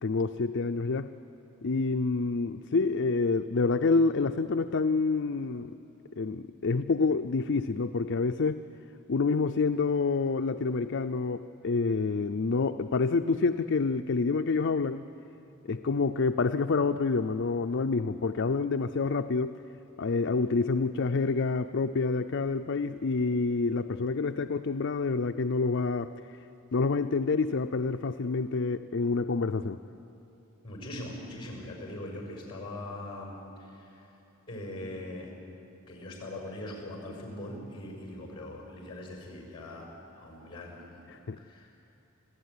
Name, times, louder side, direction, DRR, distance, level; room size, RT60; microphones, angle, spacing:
voice 1, 0.0-1.1 1.6-5.7 6.2-8.6 9.1-15.1 15.6-19.6 20.0-26.4 26.7-29.8 41.1-41.4, left 4 dB, 55° left, 8 dB, 0.5 m, -28 dB
voice 2, 30.6-33.9 34.5-35.3 35.9-39.9 40.2-41.8, left 1 dB, 25° left, 0 dB, 5.6 m, -41 dB
25.5 x 15.0 x 9.7 m, 2.9 s
head